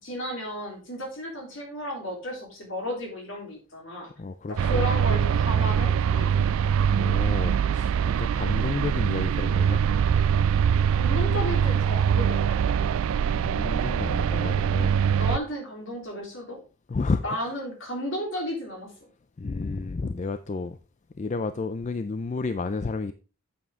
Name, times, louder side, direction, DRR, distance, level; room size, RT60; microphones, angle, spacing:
voice 1, 0.0-4.1 4.5-6.5 10.9-12.6 15.1-16.6 17.2-18.9, equal, 60° left, 3.5 m, -33 dB
voice 2, 4.2-4.9 7.0-9.9 13.1-14.9 16.9-17.4 19.4-20.8 21.2-23.1, left 3 dB, 35° left, 0.4 m, -31 dB
sound 1, 4.6-15.4, right 7 dB, 70° right, 0.3 m, -23 dB
8.6 x 7.1 x 3.6 m
head